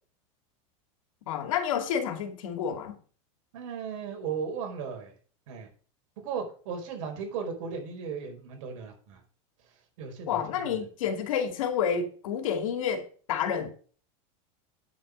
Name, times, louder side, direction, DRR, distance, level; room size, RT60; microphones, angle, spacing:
voice 1, 1.3-3.0 10.3-13.7, left 7 dB, 85° left, 2.5 m, -29 dB
voice 2, 3.5-5.1 5.5-5.7 6.2-9.2 10.0-10.8, right 6 dB, 70° right, 4.9 m, -36 dB
9.5 x 7.8 x 5.3 m
supercardioid pair, 130°, 17 cm